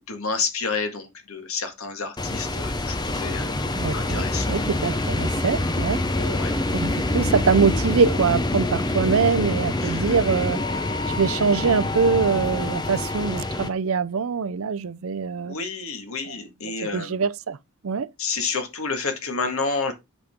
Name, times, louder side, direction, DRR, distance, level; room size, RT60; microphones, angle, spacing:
voice 1, 0.1-3.6 3.9-4.6 6.1-7.0 9.8-10.1 15.4-17.2 18.2-19.9, left 4 dB, 75° left, 1.9 m, -30 dB
sound 1, 2.2-13.7, left 2 dB, 20° left, 0.7 m, -26 dB
voice 2, 3.7-6.0 6.7-10.6 11.2-15.6 16.3-16.4 16.8-17.6 17.8-18.1, right 5 dB, 70° right, 0.5 m, -23 dB
8.3 x 5.1 x 3.6 m
head